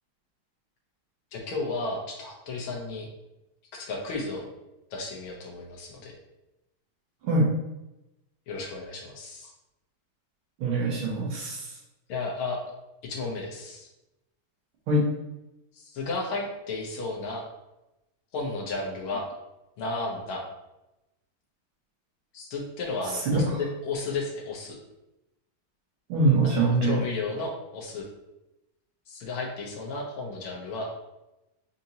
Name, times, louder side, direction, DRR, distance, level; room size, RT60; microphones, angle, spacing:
voice 1, 1.3-3.1 3.7-4.5 4.9-6.2 8.5-9.5 12.1-12.6 13.0-13.9 15.7-17.4 18.3-19.2 19.8-20.4 22.3-24.8 26.4-28.0 29.1-31.1, left 3 dB, 75° left, 0 dB, 1.6 m, -33 dB
voice 2, 10.6-11.8 14.9-15.1 23.2-23.6 26.1-27.0, right 2 dB, 75° right, -3 dB, 1.8 m, -23 dB
5.0 x 2.7 x 2.8 m, 0.95 s
omnidirectional pair, 2.3 m